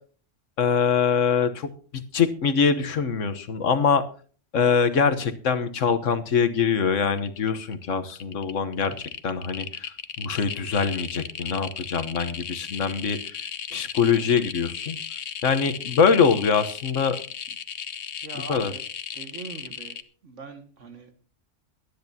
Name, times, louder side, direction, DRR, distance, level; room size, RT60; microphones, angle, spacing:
voice 1, 0.6-1.7 2.1-4.0 4.5-15.0 15.4-17.2 18.5-18.7, left 6 dB, 85° left, 10 dB, 1.5 m, -23 dB
sound 1, 6.6-6.9 7.1-7.7 8.1-20.0, left 8 dB, 65° left, 1.2 m, -36 dB
voice 2, 18.2-18.9 19.1-20.0 20.2-21.1, right 3 dB, 80° right, 6 dB, 2.2 m, -41 dB
23.0 x 10.0 x 2.8 m, 0.42 s
omnidirectional pair, 1.3 m